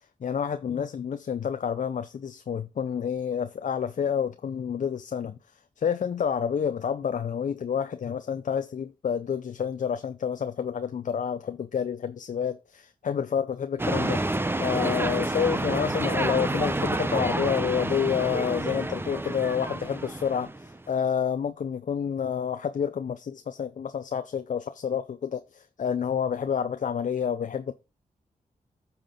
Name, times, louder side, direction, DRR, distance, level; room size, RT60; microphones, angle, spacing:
voice 1, 0.2-5.4 5.8-14.2 14.6-27.7, left 7 dB, 60° left, 0.5 m, -29 dB
sound 1, 13.8-20.8, right 2 dB, 15° right, 0.8 m, -29 dB
8.8 x 5.9 x 3.7 m
cardioid pair, 70°, 15 cm